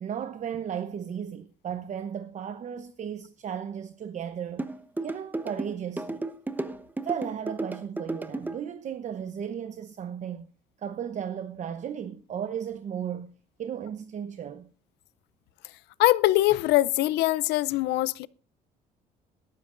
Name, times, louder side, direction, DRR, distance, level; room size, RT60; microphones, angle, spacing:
voice 1, 0.0-4.7 5.0-6.3 7.0-10.5 10.8-13.3 13.6-14.7, right 8 dB, 45° right, 0.9 m, -35 dB
sound 1, 4.6-8.6, right 2 dB, 10° right, 0.9 m, -33 dB
voice 2, 16.0-18.3, left 17 dB, 85° left, 0.6 m, -22 dB
21.5 x 12.5 x 2.6 m
cardioid pair, 110°, 17 cm